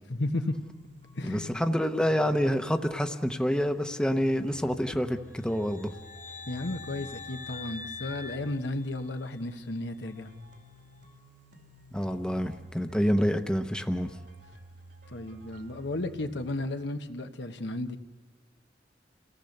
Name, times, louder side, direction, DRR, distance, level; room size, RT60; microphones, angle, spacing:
voice 1, 0.1-0.5 1.2-1.5 6.5-10.3 15.1-18.0, left 2 dB, 85° left, 6 dB, 1.3 m, -33 dB
sound 1, 0.5-16.5, equal, 80° right, 2.6 m, -52 dB
voice 2, 1.2-5.2 5.4-5.9 11.9-14.1, equal, 5° left, 6 dB, 0.9 m, -27 dB
sound 2, 5.4-9.4, left 5 dB, 45° left, 1.0 m, -44 dB
28.5 x 17.5 x 6.7 m, 1.4 s
head